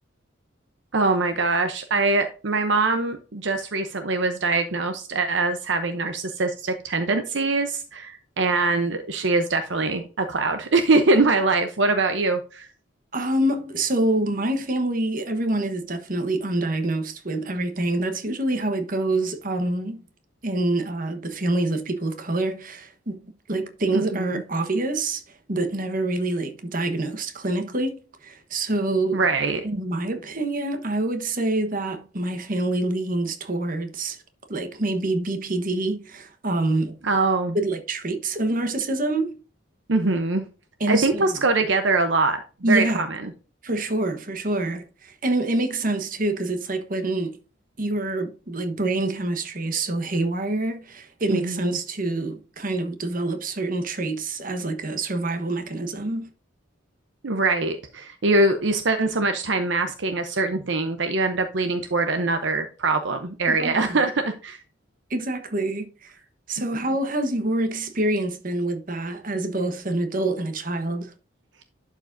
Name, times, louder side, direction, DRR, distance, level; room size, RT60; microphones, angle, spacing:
voice 1, 0.9-12.7 23.9-24.4 29.1-29.6 37.0-37.6 39.9-40.4 40.9-43.3 51.3-51.8 57.2-64.6 66.6-66.7, right 3 dB, 65° right, 0.8 m, -23 dB
voice 2, 13.1-20.0 20.4-23.2 23.5-25.2 25.5-29.2 29.6-34.2 34.5-37.0 37.5-39.4 40.8-41.4 42.6-43.1 43.6-47.4 47.8-56.3 63.5-64.0 65.1-66.1 66.5-71.1, right 2 dB, 45° right, 1.2 m, -26 dB
11.5 x 4.9 x 2.6 m
head